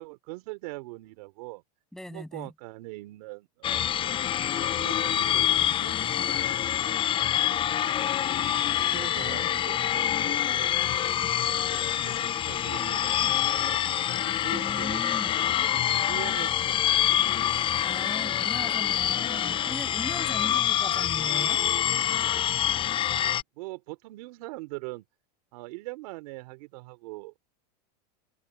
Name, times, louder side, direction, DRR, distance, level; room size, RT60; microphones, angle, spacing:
voice 1, 0.0-1.6 2.1-3.9 4.5-7.0 7.4-7.6 8.4-10.8 11.3-13.8 14.1-15.3 15.7-16.8 23.6-25.0 25.5-27.4, right 23 dB, 65° right, 3.3 m, -43 dB
voice 2, 1.9-2.5 14.5-15.3 17.8-21.6, left 1 dB, ahead, 6.8 m, -39 dB
sound 1, 3.6-23.4, left 10 dB, 25° left, 0.6 m, -26 dB
supercardioid pair, 130°, 20 cm